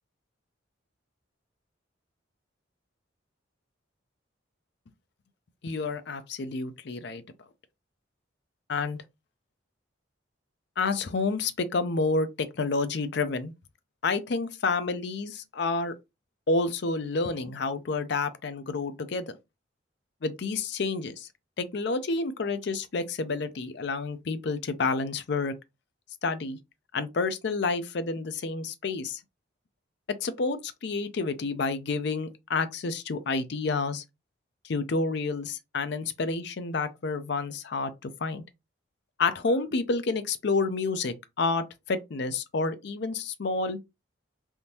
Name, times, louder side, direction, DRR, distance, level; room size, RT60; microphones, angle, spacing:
voice 1, 5.6-7.2 8.7-9.0 10.8-13.5 14.0-15.9 16.5-19.4 20.2-21.3 21.6-25.5 26.2-26.6 26.9-29.2 30.1-34.0 34.6-38.4 39.2-43.8, left 3 dB, 55° left, 0.5 m, -29 dB
3.5 x 2.6 x 2.8 m
head